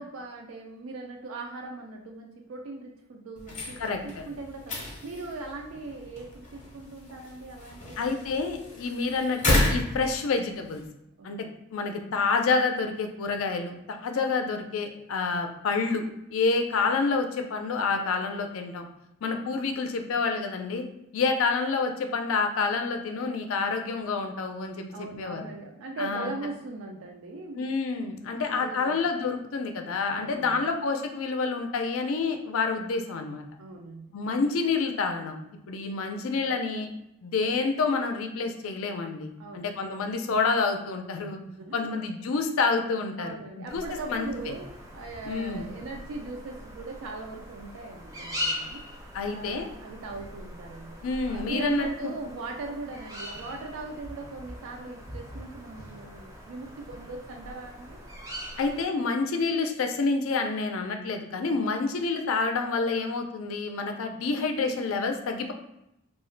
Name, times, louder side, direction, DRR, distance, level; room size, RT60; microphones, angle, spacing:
voice 1, 0.0-8.2 11.2-11.6 24.9-27.8 28.3-29.1 30.1-30.6 33.6-34.2 39.4-39.7 40.1-40.2 41.3-41.9 43.2-48.8 49.2-58.0, right 3 dB, 75° right, 1 dB, 0.3 m, -40 dB
sound 1, 3.4-10.9, left 1 dB, 35° left, 0.6 m, -32 dB
voice 2, 3.8-4.2 8.0-10.8 11.2-11.4 11.7-16.0 16.3-18.8 19.2-20.8 21.1-24.9 25.2-25.4 26.0-26.3 27.6-33.4 34.1-35.3 35.7-36.9 37.2-41.4 41.7-43.8 44.1-44.6 45.3-45.6 49.1-49.7 51.0-51.9 58.6-65.5, left 4 dB, 75° left, 5 dB, 0.4 m, -28 dB
sound 2, 43.7-58.8, left 1 dB, 15° right, 0.5 m, -41 dB
2.3 x 2.1 x 3.7 m, 0.82 s
head